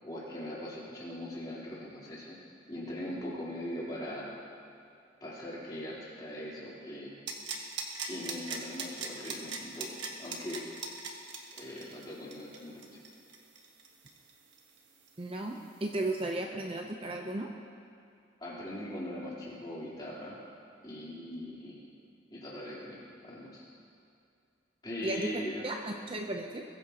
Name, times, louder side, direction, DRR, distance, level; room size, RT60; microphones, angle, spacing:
voice 1, 0.0-2.4 2.7-4.3 5.2-7.2 8.0-10.8 11.6-13.0 18.4-20.4 20.8-21.8 22.3-23.6 24.8-25.7, left 1 dB, 20° left, -7 dB, 3.5 m, -41 dB
sound 1, 7.3-14.8 15.1-15.2, right 5 dB, 70° right, 1.5 m, -39 dB
voice 2, 15.2-17.5 25.0-25.3 25.6-26.6, right 1 dB, 30° right, 2 dB, 0.7 m, -35 dB
22.0 x 15.5 x 2.9 m, 2.4 s
head